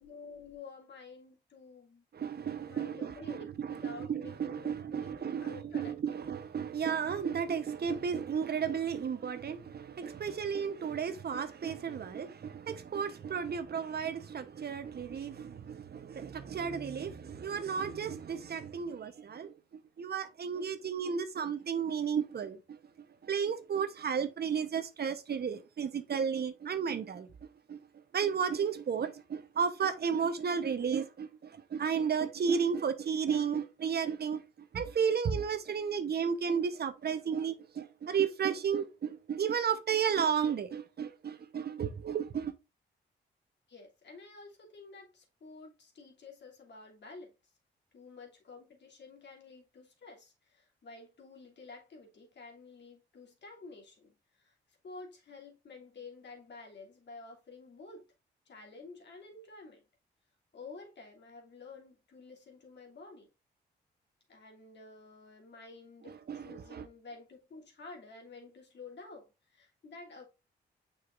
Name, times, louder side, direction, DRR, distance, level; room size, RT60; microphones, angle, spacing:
voice 1, 0.0-2.1 2.6-5.9 43.7-47.5 47.9-58.1 58.5-59.8 60.5-63.3 64.3-70.2, left 3 dB, 60° left, 2.7 m, -51 dB
voice 2, 2.1-22.8 23.2-27.3 27.7-27.8 28.1-34.4 34.7-42.5 66.3-66.8, right 7 dB, 55° right, 0.9 m, -33 dB
6.7 x 5.7 x 2.5 m
supercardioid pair, 50°, 20 cm